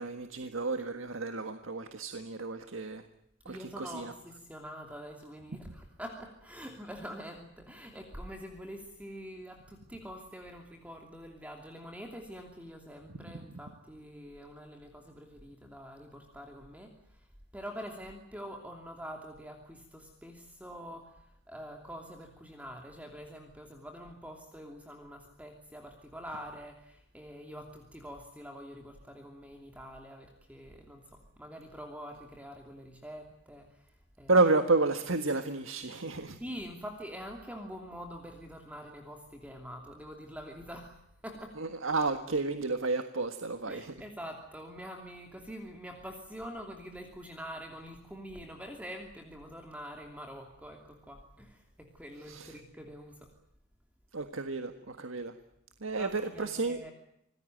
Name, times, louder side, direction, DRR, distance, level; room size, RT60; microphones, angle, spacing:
voice 1, 0.0-3.0 3.5-4.1 34.3-36.4 41.6-43.9 52.3-52.6 54.1-55.3 55.8-56.8, right 3 dB, 75° right, 8 dB, 1.6 m, -31 dB
voice 2, 3.5-17.3 17.5-34.3 36.4-41.6 43.7-53.3 55.9-56.9, equal, 5° right, 3 dB, 2.8 m, -45 dB
26.5 x 19.5 x 9.2 m, 0.79 s
head